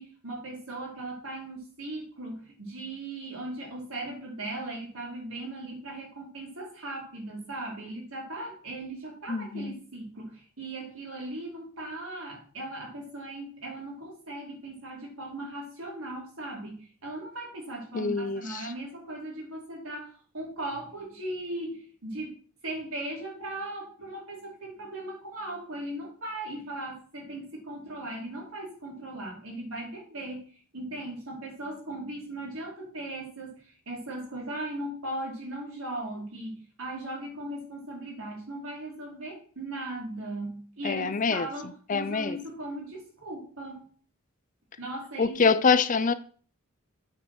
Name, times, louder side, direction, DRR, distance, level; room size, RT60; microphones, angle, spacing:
voice 1, 0.0-22.3 22.6-30.4 30.7-43.9 44.8-45.4, right 1 dB, 80° right, -3 dB, 4.7 m, -38 dB
voice 2, 9.3-9.8 17.9-18.6 40.8-41.5 41.9-42.4 45.2-46.1, left 5 dB, 40° left, 13 dB, 0.6 m, -25 dB
8.4 x 5.4 x 6.4 m, 0.43 s
head